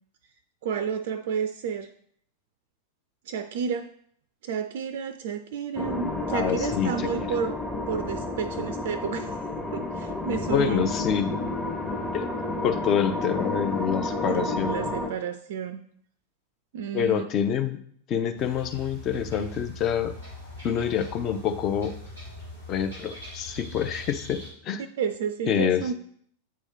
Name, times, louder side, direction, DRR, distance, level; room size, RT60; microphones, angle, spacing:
voice 1, 0.6-1.9 3.3-3.9 4.4-7.6 7.9-9.4 9.7-10.9 14.3-15.8 16.7-17.2 25.0-25.9, right 7 dB, 55° right, 10 dB, 0.3 m, -31 dB
sound 1, 5.8-15.1, left 2 dB, 15° left, 0.9 m, -30 dB
voice 2, 6.3-7.1 10.5-11.3 12.1-12.2 12.6-14.7 16.9-17.8 18.1-20.1 20.6-21.9 22.7-24.8 25.5-25.8, left 8 dB, 35° left, 8 dB, 0.5 m, -26 dB
sound 2, 18.4-24.5, left 1 dB, 90° left, 2.8 m, -41 dB
8.3 x 3.0 x 3.9 m, 0.63 s
figure-of-eight pair, 90°, 0 cm